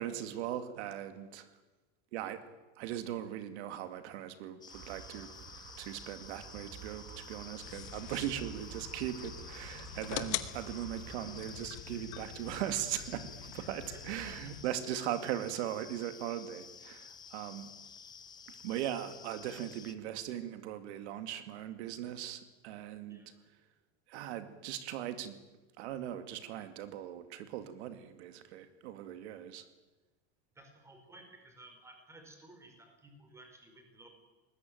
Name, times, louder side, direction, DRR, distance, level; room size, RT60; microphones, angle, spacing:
voice 1, 0.0-1.5 2.1-2.4 2.8-5.3 5.8-17.7 18.6-23.2 24.1-25.4 25.8-29.6, right 11 dB, 80° right, 10 dB, 2.4 m, -39 dB
sound 1, 4.6-19.9, left 6 dB, 10° left, 0.8 m, -51 dB
sound 2, 4.7-11.8, right 8 dB, 40° right, 2.0 m, -52 dB
sound 3, 7.6-14.6, left 14 dB, 55° left, 1.6 m, -44 dB
voice 2, 13.5-14.6 23.1-23.4 30.5-34.1, right 2 dB, 10° right, 5 dB, 4.5 m, -56 dB
23.5 x 20.0 x 9.2 m, 1.1 s
cardioid pair, 170°, 33 cm